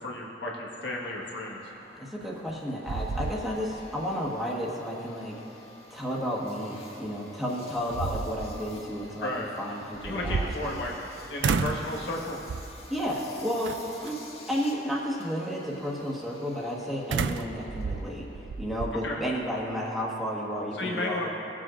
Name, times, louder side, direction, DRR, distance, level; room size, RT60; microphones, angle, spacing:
voice 1, 0.0-1.6 9.2-9.5 10.0-10.9 11.3-12.4 19.0-19.2 20.8-21.3, left 1 dB, 85° left, -2 dB, 1.5 m, -33 dB
Engine, 0.9-19.3, left 2 dB, 35° left, 1.6 m, -52 dB
voice 2, 2.0-5.4 5.9-9.3 9.6-10.8 12.9-13.7 14.0-14.2 14.5-18.3 18.6-21.3, equal, ahead, -5 dB, 1.4 m, -32 dB
sound 1, 2.2-2.6 2.9-3.9 4.3-4.4 7.0-7.1 7.7-8.6 9.9-11.1 11.4-11.9 12.5-12.9 13.6-14.1 17.1-18.9, right 5 dB, 85° right, 0.4 m, -31 dB
18.5 x 7.5 x 2.5 m, 3.0 s
head